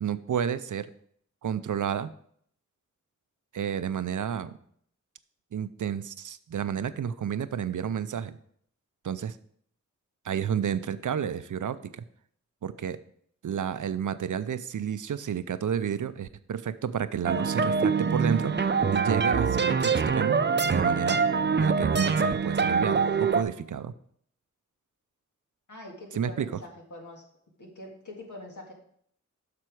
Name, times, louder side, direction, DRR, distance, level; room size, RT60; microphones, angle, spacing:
voice 1, 0.0-0.9 1.4-2.1 3.5-4.6 5.5-8.4 9.0-9.4 10.2-12.0 12.6-13.0 13.4-20.4 20.7-21.2 21.6-23.9 26.1-26.5, right 8 dB, 85° right, 14 dB, 0.5 m, -31 dB
sound 1, 17.3-23.4, right 5 dB, 35° right, 0.5 m, -24 dB
voice 2, 25.7-27.2 27.6-28.7, left 1 dB, 80° left, 0 dB, 1.9 m, -44 dB
7.7 x 6.0 x 4.7 m, 0.64 s
wide cardioid pair, 60°, 30 cm